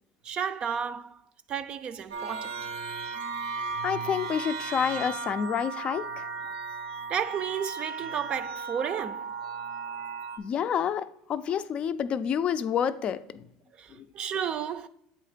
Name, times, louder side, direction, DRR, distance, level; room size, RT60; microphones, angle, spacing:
voice 1, 0.2-1.2 1.5-2.7 7.1-9.3 13.7-14.9, right 8 dB, 45° right, 0.4 m, -32 dB
sound 1, 2.1-10.4, right 4 dB, 90° right, 0.8 m, -36 dB
voice 2, 3.8-6.3 10.4-13.5 13.9-14.1, left 8 dB, 45° left, 0.4 m, -29 dB
8.0 x 2.9 x 5.0 m
supercardioid pair, 95°, 3 cm